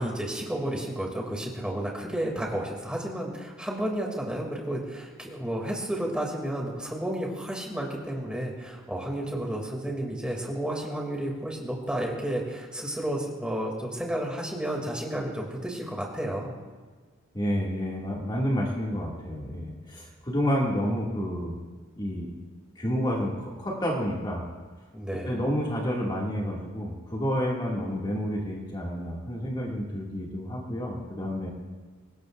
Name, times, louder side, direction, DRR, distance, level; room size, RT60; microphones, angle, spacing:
voice 1, 0.0-16.5 24.9-25.4, right 1 dB, 5° right, -1 dB, 2.6 m, -32 dB
voice 2, 17.3-21.5 22.0-22.3 22.8-24.4 25.3-31.5, equal, 20° left, -3 dB, 2.3 m, -29 dB
24.0 x 19.5 x 2.6 m, 1.5 s
head